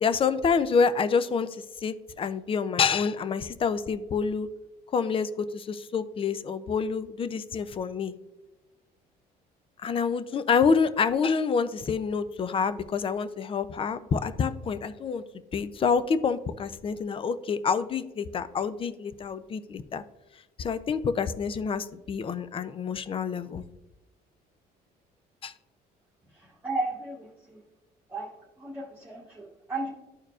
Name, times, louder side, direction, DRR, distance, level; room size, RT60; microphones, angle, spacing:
voice 1, 0.0-4.5 4.9-8.1 9.8-15.2 15.5-20.0 20.6-23.6 25.4-25.5, left 5 dB, 30° left, 13 dB, 0.4 m, -27 dB
voice 2, 26.3-27.6 28.1-28.3 28.6-29.9, right 2 dB, 10° right, -4 dB, 1.2 m, -34 dB
12.5 x 4.4 x 2.4 m, 1.0 s
cardioid pair, 110°, 17 cm